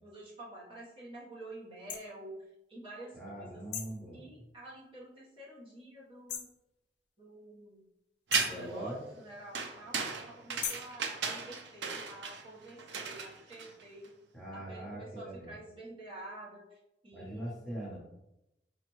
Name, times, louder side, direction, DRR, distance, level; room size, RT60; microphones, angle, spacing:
voice 1, 0.0-3.6 4.1-6.5 7.2-7.9 8.3-14.1 14.5-17.7, right 1 dB, 30° right, -8 dB, 1.1 m, -49 dB
sound 1, 1.9-2.0 3.7-4.0 6.3-6.6 8.3-8.6 10.6-10.9, left 8 dB, 70° left, 0.5 m, -38 dB
voice 2, 3.1-4.2 8.3-9.0 14.3-15.3 17.1-18.0, right 1 dB, ahead, -7 dB, 1.0 m, -41 dB
sound 2, 8.3-8.8 9.5-14.1, right 5 dB, 75° right, 0.5 m, -35 dB
4.3 x 2.4 x 3.0 m, 0.91 s
head